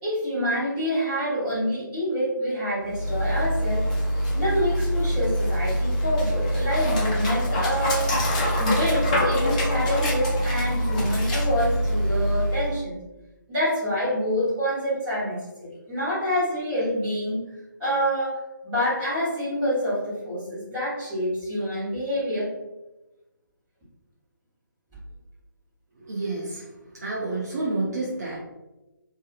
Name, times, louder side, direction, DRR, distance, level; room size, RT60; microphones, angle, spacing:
voice 1, 0.0-3.8 4.3-8.1 8.5-13.0 13.5-17.4 17.8-22.5, equal, 15° right, -11 dB, 1.3 m, -27 dB
Dog, 2.8-12.8, equal, 20° left, 0.5 m, -24 dB
voice 2, 26.0-28.4, right 2 dB, 50° right, -5 dB, 0.6 m, -30 dB
2.7 x 2.4 x 2.5 m, 1.0 s
figure-of-eight pair, 150°, 11 cm